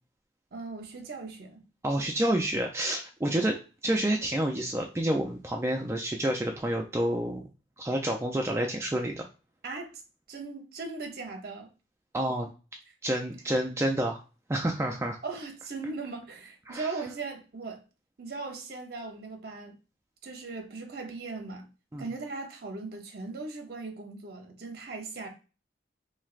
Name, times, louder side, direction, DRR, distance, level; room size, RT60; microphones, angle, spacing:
voice 1, 0.5-1.6 9.6-9.9 10.3-11.7 12.9-13.0 15.2-17.8 18.2-19.8 20.2-21.7 22.0-25.3, right 3 dB, 55° right, 0.7 m, -38 dB
voice 2, 1.8-3.6 3.8-7.5 7.8-9.2 12.1-12.5 13.0-14.2 14.5-15.2 16.7-16.9 21.9-22.1, right 1 dB, 15° right, 0.4 m, -29 dB
3.2 x 3.2 x 2.4 m
head